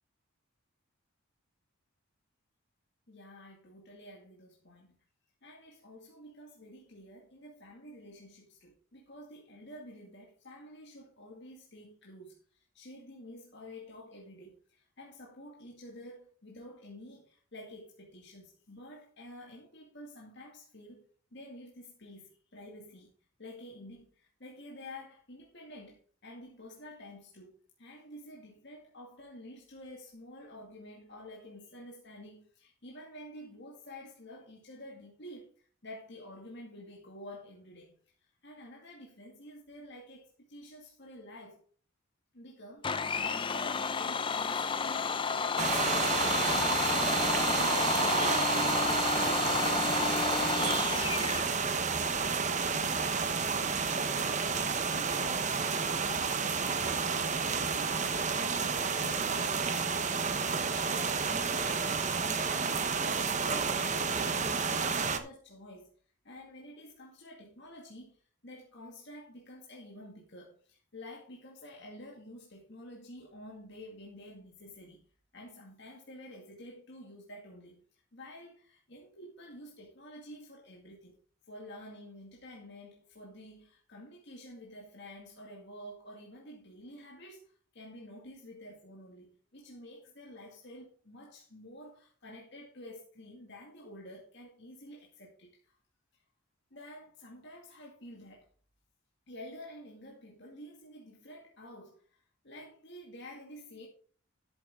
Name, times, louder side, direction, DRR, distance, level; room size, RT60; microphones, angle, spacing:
voice 1, 3.1-5.0 5.4-23.1 23.4-37.9 38.2-41.6 42.3-48.1 48.4-56.3 56.6-65.9 66.2-75.0 75.3-77.8 78.1-81.2 81.5-95.8 96.1-96.2 96.7-98.5 99.3-103.9, left 1 dB, 55° left, 2.2 m, -50 dB
Domestic sounds home sounds, 42.8-51.5, left 5 dB, 25° left, 0.5 m, -31 dB
sound 1, 45.6-65.2, right 5 dB, 35° right, 0.9 m, -30 dB
13.0 x 7.7 x 3.7 m
head